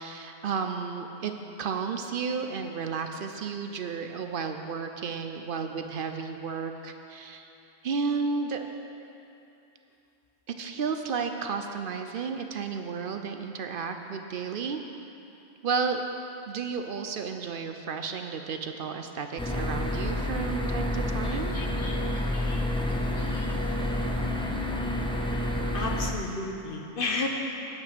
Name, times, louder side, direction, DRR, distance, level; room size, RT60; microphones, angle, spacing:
voice 1, 0.0-1.3 1.6-7.5 7.8-8.7 10.6-14.8 15.6-16.0 16.5-21.6, right 5 dB, 60° right, 6 dB, 0.7 m, -32 dB
sound 1, 19.4-26.1, left 1 dB, 5° left, 0.6 m, -29 dB
voice 2, 21.2-22.6 23.2-23.6 25.7-27.3, left 3 dB, 55° left, 1 dB, 1.2 m, -34 dB
9.1 x 8.8 x 6.0 m, 2.9 s
omnidirectional pair, 1.1 m